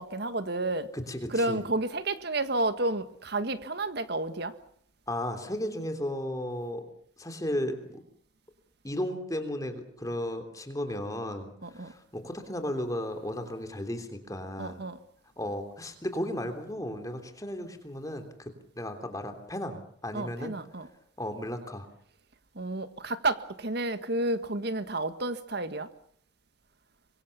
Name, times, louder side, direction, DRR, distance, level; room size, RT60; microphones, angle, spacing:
voice 1, 0.0-0.9 1.3-4.5 11.6-11.9 14.6-15.0 20.1-20.9 22.6-25.9, right 2 dB, 55° right, 11 dB, 1.7 m, -31 dB
voice 2, 0.9-1.6 5.1-6.9 7.2-8.0 8.8-14.8 15.4-20.6 21.2-21.9, left 1 dB, 20° left, 6 dB, 3.2 m, -35 dB
25.5 x 23.0 x 7.1 m, 0.63 s
head